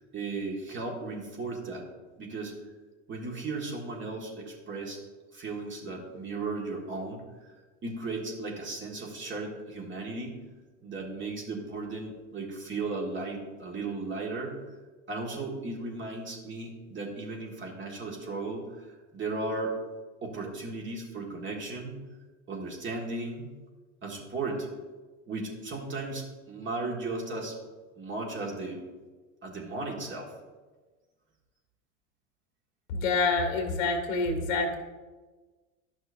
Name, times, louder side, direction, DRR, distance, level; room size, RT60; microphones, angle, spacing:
voice 1, 0.1-1.9 2.2-2.6 3.1-5.0 5.3-7.5 7.8-10.3 10.8-14.5 15.1-18.9 19.1-19.8 20.2-22.0 22.5-23.4 24.0-24.7 25.3-27.6 28.0-28.8 29.4-30.3, right 3 dB, 30° right, 0 dB, 1.8 m, -36 dB
voice 2, 32.9-34.8, left 3 dB, 80° left, 2 dB, 1.9 m, -27 dB
11.5 x 6.1 x 2.6 m, 1.3 s
supercardioid pair, 105°, 40 cm